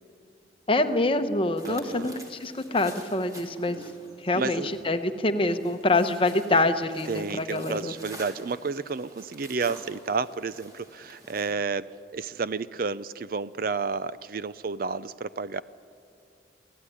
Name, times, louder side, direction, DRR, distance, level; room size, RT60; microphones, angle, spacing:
voice 1, 0.7-3.8 4.2-7.9, left 2 dB, 30° left, 9 dB, 1.0 m, -25 dB
sound 1, 1.6-11.5, equal, 20° right, 3.2 m, -47 dB
voice 2, 1.7-2.1 4.3-4.7 7.1-15.6, right 4 dB, 50° right, 16 dB, 0.5 m, -31 dB
26.0 x 17.0 x 9.9 m, 2.4 s
head